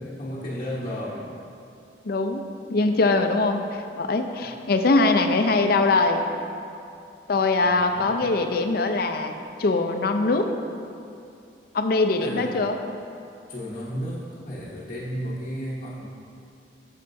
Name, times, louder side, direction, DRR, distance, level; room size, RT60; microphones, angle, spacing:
voice 1, 0.0-1.3 4.4-4.5 7.6-8.5 12.2-12.6 13.5-16.1, equal, 40° left, -7 dB, 0.9 m, -34 dB
voice 2, 2.0-2.4 2.7-6.2 7.3-9.3 9.6-10.5 11.7-12.8, left 3 dB, 60° left, 6 dB, 0.5 m, -22 dB
10.5 x 6.7 x 2.6 m, 2.5 s
head